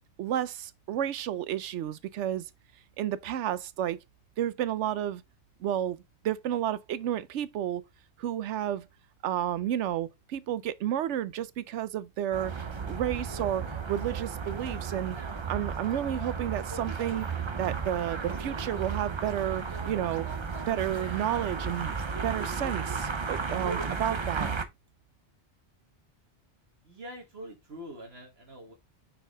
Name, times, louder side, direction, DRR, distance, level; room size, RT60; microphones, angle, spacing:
voice 1, 0.2-2.5 3.0-4.0 4.4-5.2 5.6-7.8 8.2-8.9 9.2-12.5 12.8-15.2 15.5-17.3 17.6-20.3 20.7-21.9 22.2-24.5, right 11 dB, 85° right, 0.9 m, -31 dB
sound 1, 12.3-24.7, right 5 dB, 30° right, 0.6 m, -34 dB
voice 2, 26.8-28.7, equal, 65° right, 1.7 m, -44 dB
5.9 x 4.6 x 3.5 m
omnidirectional pair, 1.2 m